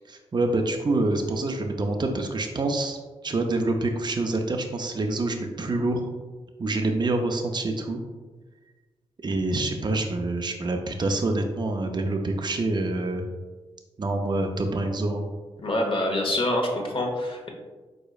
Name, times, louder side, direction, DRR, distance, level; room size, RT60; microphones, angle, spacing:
voice 1, 0.1-3.0 3.2-6.0 6.6-8.0 9.2-13.2 14.0-15.2, right 2 dB, 40° right, 4 dB, 0.6 m, -26 dB
voice 2, 15.6-17.5, left 1 dB, 45° left, 1 dB, 1.1 m, -26 dB
4.9 x 3.8 x 2.4 m, 1.3 s
supercardioid pair, 45°, 12 cm